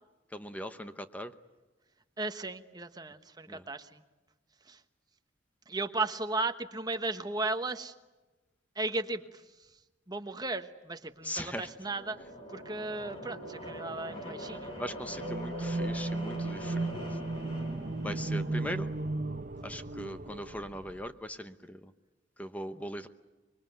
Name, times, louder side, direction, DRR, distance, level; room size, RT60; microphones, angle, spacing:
voice 1, 0.3-1.3 3.5-3.7 11.2-11.7 14.2-14.3 14.8-17.2 18.0-18.9 19.6-21.9 22.4-23.1, equal, 10° left, 9 dB, 0.9 m, -40 dB
voice 2, 2.2-4.0 4.7-4.8 5.7-7.9 8.8-9.4 10.1-12.2 12.5-14.7, right 2 dB, 20° right, 8 dB, 1.2 m, -35 dB
sound 1, 11.2-19.1, equal, 30° left, 7.3 m, -44 dB
sound 2, 15.1-21.1, right 2 dB, 45° right, 1.1 m, -35 dB
25.5 x 23.0 x 9.3 m, 1.2 s
head